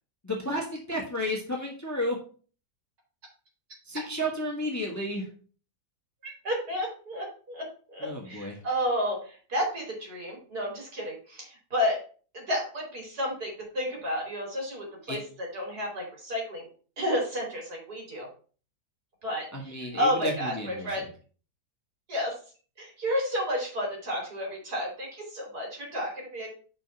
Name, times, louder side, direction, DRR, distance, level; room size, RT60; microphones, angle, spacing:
voice 1, 0.2-2.2 3.8-5.3 8.0-8.6 15.1-15.2 19.5-21.1, equal, 10° left, -1 dB, 1.6 m, -32 dB
voice 2, 6.4-12.0 12.3-15.2 15.5-16.7 17.0-18.3 19.2-21.0 22.1-22.3 22.8-26.5, equal, 65° right, -1 dB, 3.5 m, -31 dB
6.0 x 4.4 x 5.7 m, 0.40 s
omnidirectional pair, 1.8 m